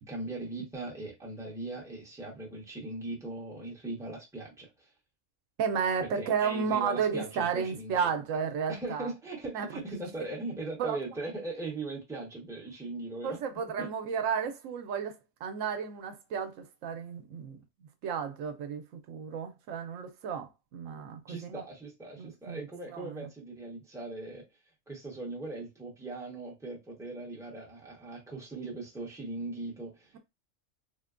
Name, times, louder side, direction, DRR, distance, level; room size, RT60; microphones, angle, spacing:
voice 1, 0.0-4.9 6.0-8.1 8.7-13.4 13.8-13.9 21.3-24.4 24.9-30.2, right 2 dB, 5° right, 0.9 m, -39 dB
voice 2, 5.6-9.1 9.5-9.7 10.8-11.0 13.2-15.2 15.4-17.6 18.0-21.6 22.2-22.6 22.9-23.3, right 6 dB, 80° right, 0.9 m, -32 dB
3.9 x 2.1 x 2.4 m
omnidirectional pair, 1.3 m